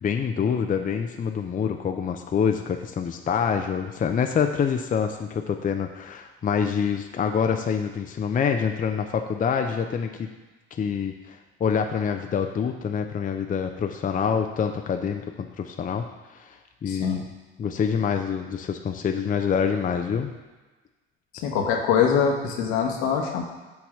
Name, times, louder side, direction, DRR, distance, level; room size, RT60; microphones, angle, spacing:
voice 1, 0.0-10.3 10.7-16.0 16.5-16.6 16.8-17.2 17.6-20.3, left 7 dB, 25° left, 5 dB, 0.6 m, -26 dB
voice 2, 16.9-17.2 21.4-23.4, left 7 dB, 65° left, 2 dB, 1.3 m, -23 dB
7.1 x 4.1 x 6.1 m, 1.2 s
hypercardioid pair, 60°, 31 cm